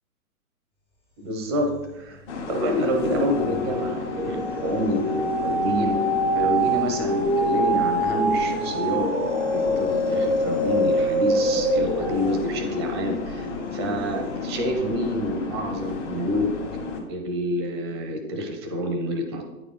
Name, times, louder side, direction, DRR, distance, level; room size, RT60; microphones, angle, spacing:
voice 1, 1.2-2.2 2.5-6.0 6.3-9.1 9.5-16.5 17.1-19.4, equal, 20° right, 4 dB, 0.5 m, -28 dB
sound 1, 1.6-2.1 2.5-15.0 15.5-15.6, equal, 10° left, 0.8 m, -26 dB
sound 2, 2.3-17.0, left 4 dB, 50° left, 1.5 m, -33 dB
9.0 x 4.1 x 3.7 m, 1.1 s
hypercardioid pair, 130°, 45 cm